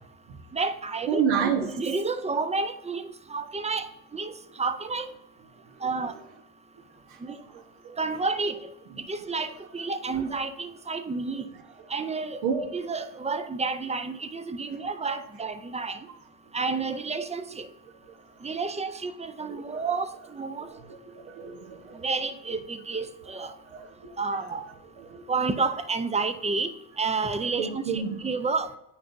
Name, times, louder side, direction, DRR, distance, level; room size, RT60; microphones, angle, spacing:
voice 1, 0.5-1.2 1.6-5.1 5.8-6.1 7.2-7.4 8.0-8.6 9.1-11.4 11.9-12.4 12.7-16.0 16.5-17.7 18.4-20.7 21.9-23.5 24.2-24.6 25.3-28.7, right 4 dB, 15° right, 0.4 m, -30 dB
voice 2, 1.1-1.8 7.8-8.0 12.4-12.7 19.4-19.6 20.7-22.0 23.7-24.1 25.0-25.3 27.6-28.3, right 6 dB, 85° right, 1.2 m, -29 dB
9.0 x 6.0 x 2.6 m
cardioid pair, 80°, 46 cm